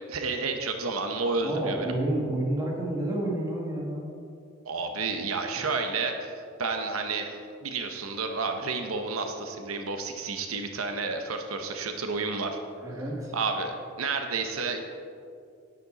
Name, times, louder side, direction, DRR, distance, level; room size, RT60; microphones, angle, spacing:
voice 1, 0.0-1.9 4.6-6.3 6.6-12.6 13.3-14.8, right 4 dB, 90° right, 5 dB, 0.9 m, -31 dB
voice 2, 1.4-4.2 12.8-13.3, right 1 dB, 15° right, -3 dB, 2.0 m, -30 dB
10.5 x 9.8 x 4.0 m, 2.4 s
head